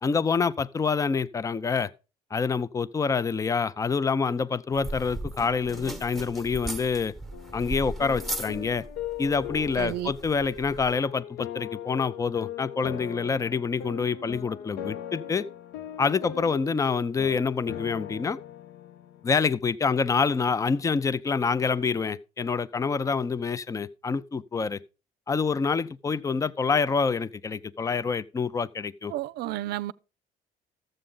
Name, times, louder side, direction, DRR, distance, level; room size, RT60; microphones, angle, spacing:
voice 1, 0.0-1.9 2.3-7.1 7.5-8.8 9.2-15.4 16.0-18.4 19.2-24.8 25.3-29.1, left 5 dB, 20° left, 0.4 m, -27 dB
sound 1, 4.7-10.9, right 1 dB, ahead, 1.1 m, -38 dB
sound 2, 7.3-19.4, left 10 dB, 85° left, 0.7 m, -40 dB
voice 2, 9.8-10.1 29.1-29.9, right 15 dB, 80° right, 0.5 m, -31 dB
12.5 x 7.7 x 3.8 m
cardioid pair, 110°, 17 cm